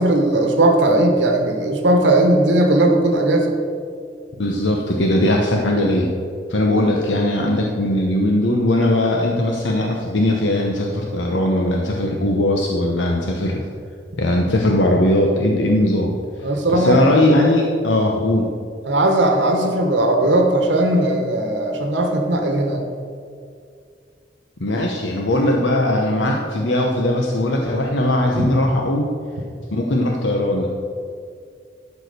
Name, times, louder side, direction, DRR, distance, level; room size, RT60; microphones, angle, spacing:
voice 1, 0.0-3.5 16.4-17.0 18.9-22.8 28.4-28.5, right 1 dB, 75° right, 2 dB, 1.2 m, -17 dB
voice 2, 4.4-6.1 6.5-13.6 14.2-16.2 16.7-18.5 24.6-29.1 29.7-30.7, left 1 dB, 85° left, 0 dB, 1.0 m, -19 dB
12.0 x 4.9 x 6.7 m, 2.3 s
head